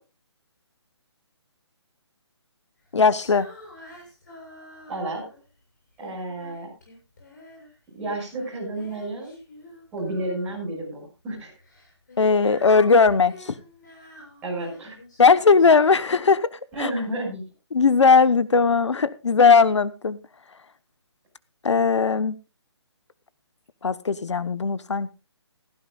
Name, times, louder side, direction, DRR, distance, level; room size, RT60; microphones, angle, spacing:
voice 1, 2.9-3.5 12.2-13.5 15.2-16.9 17.7-20.2 21.6-22.4 23.8-25.1, left 5 dB, 90° left, 1.1 m, -18 dB
Female singing, 3.1-5.5 6.0-7.7 8.0-10.8 11.6-16.2, left 1 dB, 40° left, 7.4 m, -47 dB
voice 2, 4.9-5.2 6.0-6.7 7.9-9.3 9.9-11.5 12.4-12.5 14.4-14.9 16.7-17.4, right 1 dB, 10° right, 6.6 m, -31 dB
17.0 x 16.0 x 2.4 m
hypercardioid pair, 180°, 15 cm